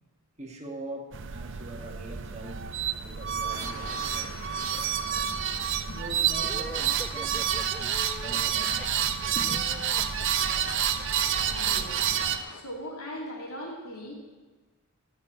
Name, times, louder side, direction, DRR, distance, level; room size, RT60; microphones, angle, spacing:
voice 1, 0.4-5.3 5.9-9.0 9.3-9.6, right 1 dB, 30° right, 2 dB, 1.5 m, -43 dB
sound 1, 1.1-12.4, right 9 dB, 55° right, 0.6 m, -29 dB
sound 2, 3.5-12.6, left 4 dB, 70° left, 1.1 m, -47 dB
sound 3, 6.4-11.0, left 1 dB, 5° left, 0.3 m, -44 dB
voice 2, 11.5-12.0 12.6-14.1, equal, 90° left, -2 dB, 3.3 m, -39 dB
12.5 x 6.1 x 8.8 m, 1.3 s
head